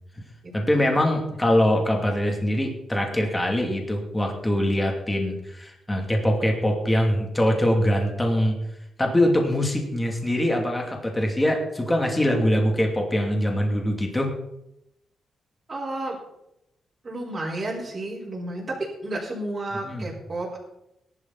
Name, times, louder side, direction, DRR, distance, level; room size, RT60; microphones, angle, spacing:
voice 1, 0.5-8.6 9.0-14.3 19.8-20.1, left 1 dB, 10° left, 1 dB, 2.7 m, -23 dB
voice 2, 15.7-16.2 17.0-18.6 19.0-20.6, right 1 dB, 30° right, -6 dB, 4.6 m, -32 dB
20.0 x 11.5 x 4.1 m, 0.84 s
cardioid pair, 130°, 0 cm